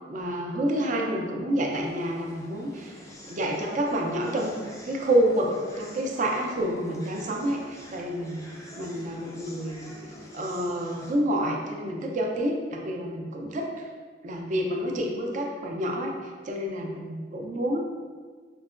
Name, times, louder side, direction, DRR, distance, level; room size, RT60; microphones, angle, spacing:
voice 1, 0.1-3.0 3.3-9.9 10.3-13.9 14.2-17.8, right 1 dB, 45° right, 0 dB, 0.4 m, -28 dB
sound 1, 1.7-11.1, equal, 15° left, 0.4 m, -47 dB
4.5 x 2.1 x 2.4 m, 1.5 s
head